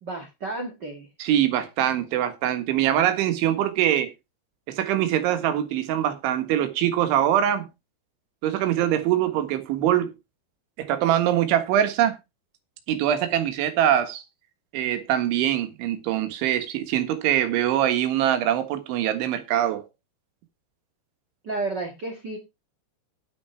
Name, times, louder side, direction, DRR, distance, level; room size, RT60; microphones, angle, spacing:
voice 1, 0.0-1.1 21.4-22.4, right 2 dB, 70° right, 1.0 m, -32 dB
voice 2, 1.2-4.1 4.7-7.7 8.4-10.1 10.8-12.2 12.9-14.2 14.7-19.8, right 11 dB, 85° right, 4.0 m, -23 dB
9.8 x 9.4 x 4.5 m
omnidirectional pair, 5.3 m